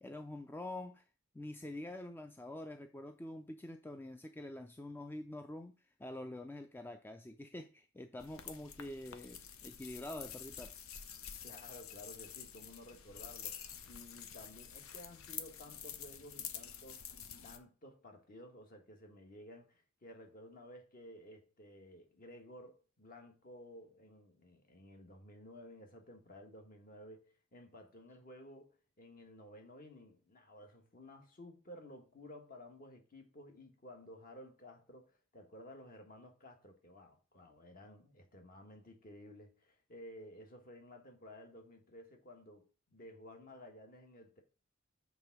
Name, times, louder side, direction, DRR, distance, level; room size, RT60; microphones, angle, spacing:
voice 1, 0.0-1.0 1.3-10.7, left 1 dB, 10° left, 0.3 m, -46 dB
sound 1, 8.2-17.6, left 8 dB, 80° left, 0.7 m, -48 dB
voice 2, 11.4-17.2 17.4-44.4, left 1 dB, 45° left, 1.4 m, -54 dB
7.0 x 3.5 x 5.8 m
head